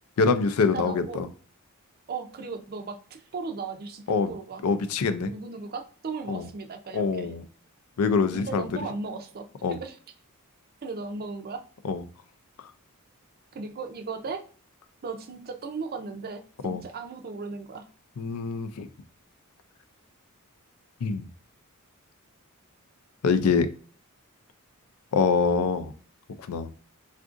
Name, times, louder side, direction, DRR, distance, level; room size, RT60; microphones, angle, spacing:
voice 1, 0.2-1.3 4.1-4.3 4.6-5.3 6.3-6.5 6.9-7.4 8.0-8.7 9.6-9.8 11.8-12.0 16.6-16.8 18.2-18.9 21.0-21.3 23.2-23.7 25.1-25.9 26.5-26.7, left 5 dB, 85° left, 11 dB, 0.4 m, -24 dB
voice 2, 0.7-1.2 2.1-4.6 5.2-7.3 8.3-10.0 10.8-11.6 13.5-14.4 15.0-17.9, right 4 dB, 45° right, 6 dB, 0.5 m, -36 dB
3.6 x 2.5 x 2.5 m, 0.41 s
head